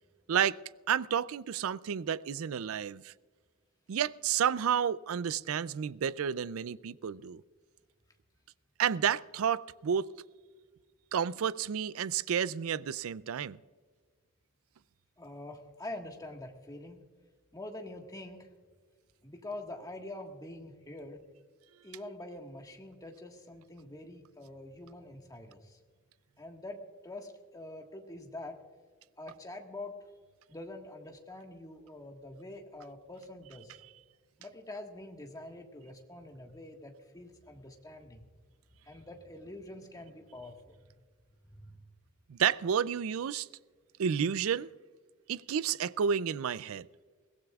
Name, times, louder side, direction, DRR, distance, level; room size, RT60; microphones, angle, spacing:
voice 1, 0.9-3.1 3.9-7.4 8.8-10.1 11.1-13.6 42.3-43.5 44.0-44.7 45.3-46.9, right 8 dB, 70° right, 0.4 m, -30 dB
voice 2, 15.2-17.0 17.5-18.5 19.2-21.2 21.8-25.8 26.4-28.6 29.2-30.0 30.5-33.8 34.4-38.3 38.8-40.9 41.5-41.8, left 1 dB, 15° left, 1.5 m, -45 dB
22.5 x 16.5 x 2.4 m
head